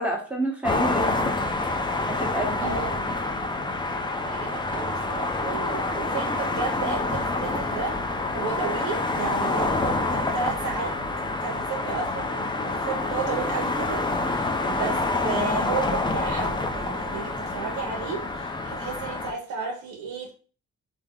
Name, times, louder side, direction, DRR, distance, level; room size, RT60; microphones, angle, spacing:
voice 1, 0.0-1.5 2.1-2.8, right 2 dB, 5° right, -2 dB, 1.1 m, -29 dB
sound 1, 0.6-19.3, left 2 dB, 15° left, 0.4 m, -27 dB
voice 2, 2.6-3.0 4.2-8.0 8.3-11.0 11.4-20.3, right 5 dB, 70° right, 1 dB, 0.7 m, -33 dB
3.4 x 2.1 x 3.5 m, 0.39 s
cardioid pair, 90°, 30 cm